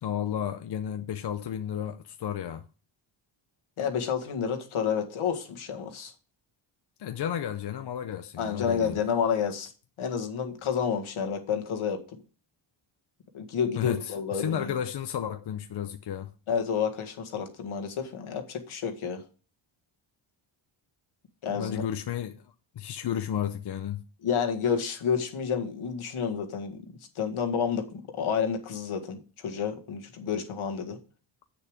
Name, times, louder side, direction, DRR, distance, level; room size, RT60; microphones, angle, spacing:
voice 1, 0.0-2.6 7.0-9.0 13.8-16.3 21.6-24.0, left 9 dB, 55° left, 0.7 m, -33 dB
voice 2, 3.8-6.1 8.4-9.7 10.0-12.0 13.3-14.7 16.5-19.2 21.4-21.9 24.2-26.8 27.2-31.0, left 7 dB, 75° left, 1.9 m, -30 dB
8.1 x 6.8 x 4.9 m
cardioid pair, 100°, 50 cm